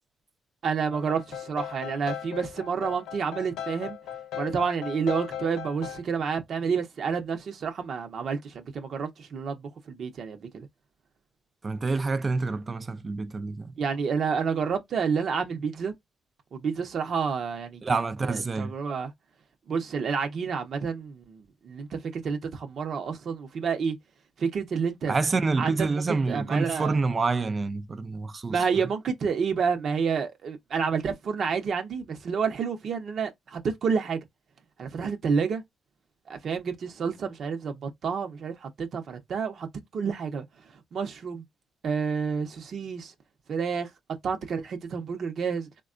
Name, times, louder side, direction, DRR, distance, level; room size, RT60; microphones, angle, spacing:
voice 1, 0.6-4.0 4.4-9.6 9.9-10.7 13.8-15.9 16.5-17.9 18.2-19.1 19.7-24.0 24.4-25.2 25.6-27.0 28.5-34.2 34.8-35.6 36.3-39.7 39.9-40.4 40.9-41.4 41.8-43.1 43.5-43.9 44.2-45.7, right 6 dB, 60° right, 0.7 m, -29 dB
sound 1, 0.9-6.0, left 9 dB, 90° left, 0.5 m, -38 dB
voice 2, 11.6-13.7 17.8-18.7 25.1-28.7, right 3 dB, 35° right, 0.4 m, -27 dB
3.4 x 2.2 x 2.4 m
cardioid pair, 90°, 0 cm